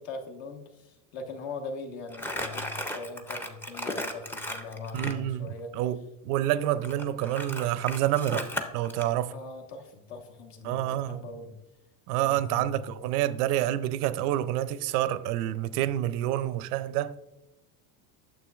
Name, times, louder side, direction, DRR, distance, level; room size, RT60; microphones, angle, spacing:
voice 1, 0.0-5.7 9.3-11.6 12.2-12.9, left 3 dB, 70° left, 1.2 m, -41 dB
Crumpling crinkling, 2.1-5.2 6.8-9.1, equal, 5° left, 0.4 m, -35 dB
voice 2, 4.9-8.5 8.7-9.3 10.6-11.2 12.1-17.2, right 13 dB, 80° right, 0.6 m, -28 dB
9.0 x 6.7 x 2.3 m
supercardioid pair, 115°, 45 cm